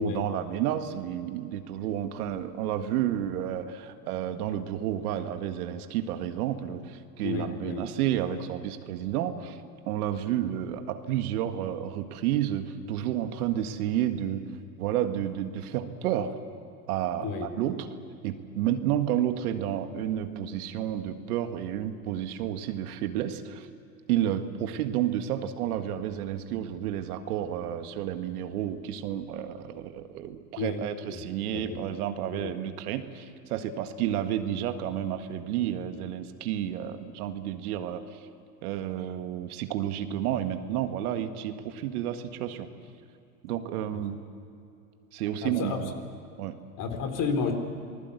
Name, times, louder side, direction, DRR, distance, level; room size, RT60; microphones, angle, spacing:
voice 1, 0.0-14.4 14.8-16.4 16.9-17.9 18.2-23.7 24.1-38.2 38.6-42.7 43.4-44.2 45.1-45.9 46.4-46.6, right 11 dB, 65° right, 8 dB, 1.9 m, -31 dB
voice 2, 7.2-7.8 17.2-17.5 30.6-30.8 31.1-31.2 31.5-31.8 32.3-32.5 43.5-43.6 43.9-44.0 45.4-45.9 46.8-47.5, left 5 dB, 40° left, 6 dB, 3.9 m, -31 dB
27.0 x 20.0 x 8.2 m, 2.7 s
hypercardioid pair, 100°, 49 cm